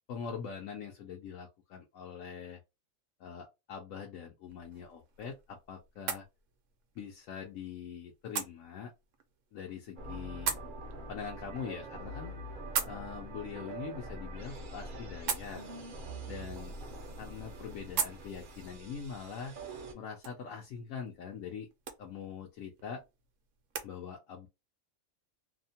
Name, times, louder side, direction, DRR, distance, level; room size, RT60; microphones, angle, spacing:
voice 1, 0.1-2.6 3.2-5.3 5.7-6.3 7.0-8.9 9.5-10.5 11.1-12.3 12.8-15.6 16.3-16.7 17.2-19.5 19.9-21.7 22.0-23.0 23.8-24.5, left 6 dB, 75° left, 0 dB, 1.0 m, -43 dB
sound 1, 4.4-23.9, right 7 dB, 75° right, 0.9 m, -43 dB
sound 2, 10.0-19.9, right 2 dB, 55° right, 0.6 m, -44 dB
2.7 x 2.1 x 2.7 m, 0.24 s
omnidirectional pair, 1.4 m